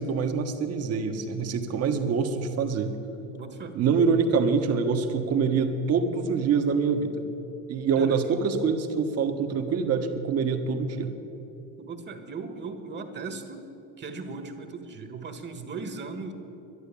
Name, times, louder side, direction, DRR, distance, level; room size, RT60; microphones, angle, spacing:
voice 1, 0.0-2.9 3.7-7.2 7.7-11.1, right 5 dB, 55° right, 6 dB, 1.4 m, -25 dB
voice 2, 3.3-3.8 8.0-8.7 11.8-13.7 14.0-16.3, right 4 dB, 35° right, 7 dB, 1.5 m, -38 dB
11.5 x 11.0 x 8.6 m, 3.0 s
cardioid pair, 115°, 30 cm